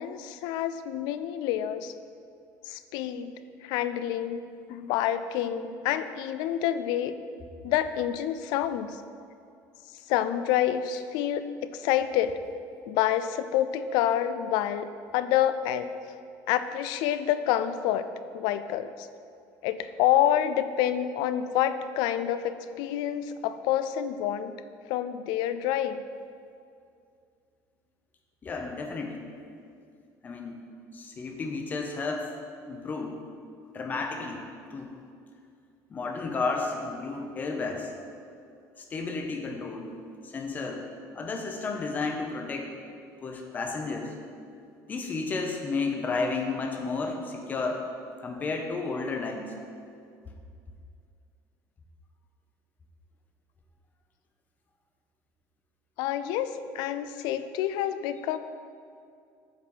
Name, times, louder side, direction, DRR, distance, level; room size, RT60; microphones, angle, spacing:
voice 1, 0.0-1.9 2.6-3.3 3.6-4.4 4.7-7.1 7.6-9.0 10.1-12.4 12.9-14.9 15.1-15.9 16.5-18.1 18.3-19.1 19.6-24.5 24.9-26.0 56.0-58.4, left 11 dB, 80° left, 12 dB, 0.4 m, -28 dB
voice 2, 28.4-29.2 30.2-30.6 30.9-32.3 32.7-33.2 33.7-34.9 35.9-37.9 38.8-39.9 40.2-40.8 41.1-42.7 43.2-44.1 44.9-47.8 48.2-49.5, left 3 dB, 25° left, 2 dB, 0.8 m, -32 dB
7.6 x 4.1 x 5.4 m, 2.4 s
cardioid pair, 160°, 7 cm